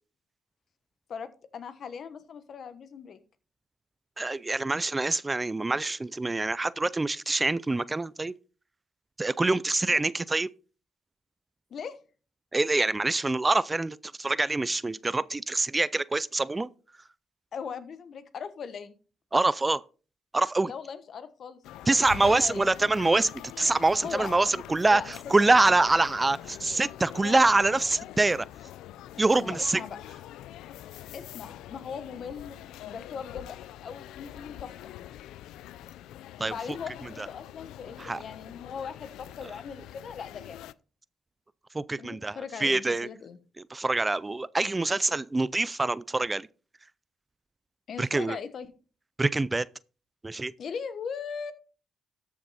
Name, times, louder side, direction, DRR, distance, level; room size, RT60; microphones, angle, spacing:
voice 1, 1.1-3.2 9.9-10.0 11.7-12.0 17.5-18.9 20.6-21.6 21.9-22.7 24.0-24.3 24.9-25.3 29.4-30.0 31.1-33.6 33.8-34.7 36.4-40.6 42.0-43.4 47.9-48.7 50.6-51.5, left 6 dB, 55° left, 1.1 m, -39 dB
voice 2, 4.2-8.3 9.2-10.5 12.5-16.7 19.3-19.8 20.3-20.7 21.9-23.3 23.6-28.4 29.2-29.8 36.4-36.5 38.0-38.2 41.7-43.1 43.7-46.5 48.0-48.4 49.2-49.7 50.2-50.5, right 2 dB, 20° right, 0.4 m, -25 dB
sound 1, 21.6-40.7, left 13 dB, 90° left, 0.4 m, -44 dB
13.5 x 6.1 x 4.1 m
cardioid pair, 90°, 0 cm